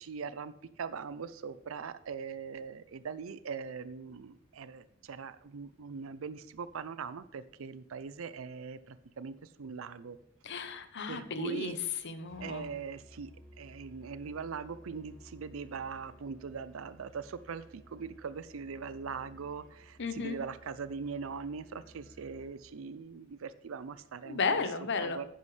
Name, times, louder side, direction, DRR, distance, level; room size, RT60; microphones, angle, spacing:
voice 1, 0.0-10.2 11.1-11.8 12.4-13.3 13.6-24.6 25.0-25.3, right 5 dB, 80° right, 14 dB, 0.5 m, -41 dB
voice 2, 10.4-11.8 12.0-12.7 20.0-20.4 24.2-25.2, left 4 dB, 60° left, 10 dB, 0.9 m, -34 dB
Musical instrument, 12.2-22.6, equal, 5° left, 2.7 m, -56 dB
11.0 x 9.4 x 3.3 m, 0.76 s
head